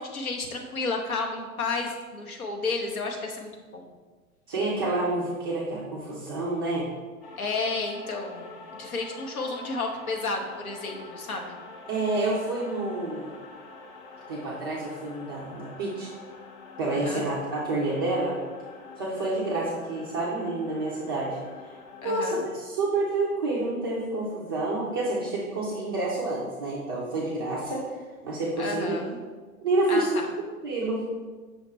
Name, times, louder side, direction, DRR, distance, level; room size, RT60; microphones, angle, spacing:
voice 1, 0.0-3.9 7.4-11.6 16.9-17.3 22.0-22.4 28.6-29.2 29.9-30.3, left 3 dB, 75° left, 2 dB, 0.9 m, -32 dB
voice 2, 4.5-6.9 11.9-13.3 14.3-16.1 16.8-18.4 19.0-21.4 22.0-27.8 28.2-29.0 29.6-30.2 30.6-31.0, right 2 dB, 20° right, -6 dB, 0.3 m, -28 dB
sound 1, 7.2-22.1, left 3 dB, 35° left, 0.6 m, -46 dB
5.7 x 2.2 x 4.1 m, 1.4 s
figure-of-eight pair, 100°, 43 cm